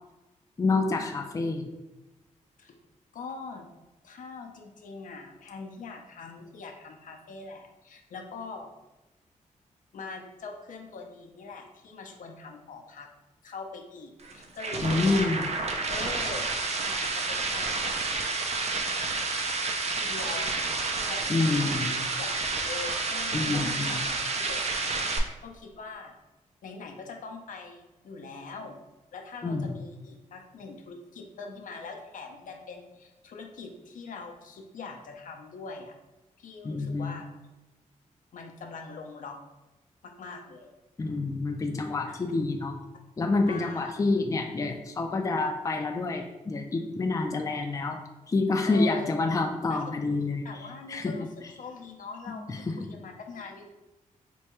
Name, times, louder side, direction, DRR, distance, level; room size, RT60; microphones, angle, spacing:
voice 1, 0.6-1.7 14.8-15.5 21.3-22.0 23.3-24.0 29.4-29.7 36.6-37.2 41.0-42.8 43.2-48.0 48.3-50.5 50.9-51.1 52.5-52.6, left 3 dB, 25° left, 3 dB, 0.4 m, -27 dB
voice 2, 3.1-3.7 4.0-8.7 9.9-13.1 13.4-15.3 15.9-16.5 16.8-18.1 19.9-20.5 21.1-22.4 22.6-24.9 25.4-26.2 26.6-28.8 29.1-35.9 36.4-37.3 38.3-39.4 40.0-40.7 41.4-42.2 43.5-43.9 48.7-49.1 49.7-49.8 50.4-51.3 51.6-53.6, left 4 dB, 75° left, 3 dB, 0.6 m, -42 dB
sound 1, 14.2-25.2, right 3 dB, 50° right, 0.5 m, -30 dB
4.4 x 2.3 x 3.0 m, 1.0 s
cardioid pair, 75°, 14 cm